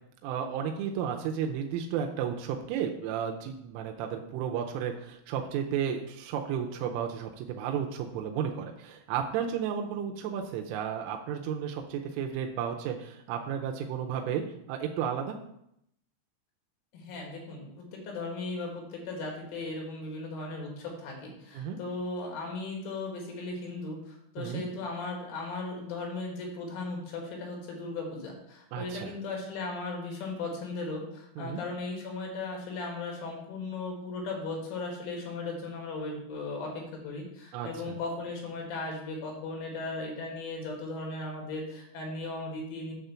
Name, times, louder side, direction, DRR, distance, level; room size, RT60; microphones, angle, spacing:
voice 1, 0.2-14.4 14.7-15.4 21.5-21.8 24.4-24.6 28.7-29.1 31.4-31.6 37.5-37.9, right 8 dB, 90° right, 3 dB, 3.2 m, -33 dB
voice 2, 16.9-42.9, left 3 dB, 75° left, 0 dB, 4.3 m, -37 dB
9.3 x 3.7 x 6.9 m, 0.77 s
omnidirectional pair, 5.7 m